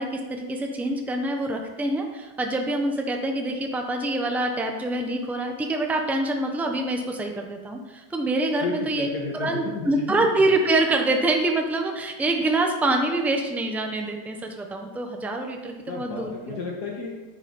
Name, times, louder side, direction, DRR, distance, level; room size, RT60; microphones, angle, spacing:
voice 1, 0.0-9.1 9.4-16.6, right 2 dB, ahead, 3 dB, 0.9 m, -25 dB
voice 2, 8.6-10.0 15.9-17.1, left 4 dB, 70° left, -2 dB, 2.0 m, -32 dB
10.0 x 9.2 x 5.4 m, 1.2 s
omnidirectional pair, 1.8 m